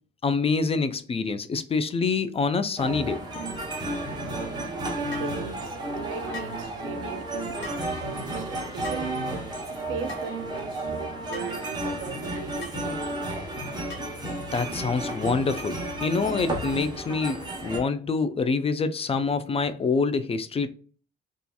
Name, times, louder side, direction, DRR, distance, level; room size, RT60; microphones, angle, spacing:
voice 1, 0.2-3.2 14.5-20.7, left 4 dB, 30° left, 0.4 m, -26 dB
sound 1, 2.8-17.8, right 1 dB, 20° right, 0.9 m, -32 dB
voice 2, 5.0-9.2 9.7-13.2, right 7 dB, 80° right, 0.5 m, -39 dB
sound 2, 5.1-5.3 6.3-6.6 7.6-7.9 8.8-9.1 10.1-10.3 11.3-11.6 12.6-12.8 13.9-14.2, left 3 dB, 70° left, 1.0 m, -40 dB
2.7 x 2.4 x 2.2 m
cardioid pair, 90°, 20 cm